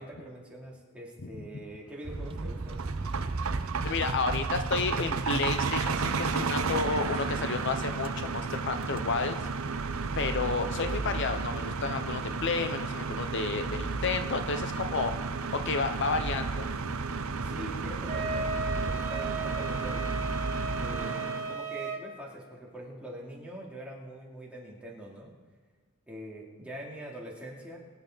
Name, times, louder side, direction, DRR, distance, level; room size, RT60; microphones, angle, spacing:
voice 1, 0.0-2.8 17.4-20.1 20.8-25.3 26.1-27.8, equal, 5° right, -4 dB, 2.8 m, -43 dB
sound 1, 2.0-21.1, right 3 dB, 25° right, 0.3 m, -37 dB
sound 2, 2.2-21.6, right 4 dB, 75° right, 0.7 m, -34 dB
voice 2, 3.8-9.4 10.2-15.1 15.6-16.5, left 4 dB, 55° left, 8 dB, 0.7 m, -31 dB
Wind instrument woodwind instrument, 18.0-22.0, right 3 dB, 55° right, 2.3 m, -35 dB
23.0 x 9.0 x 4.0 m, 1.5 s
head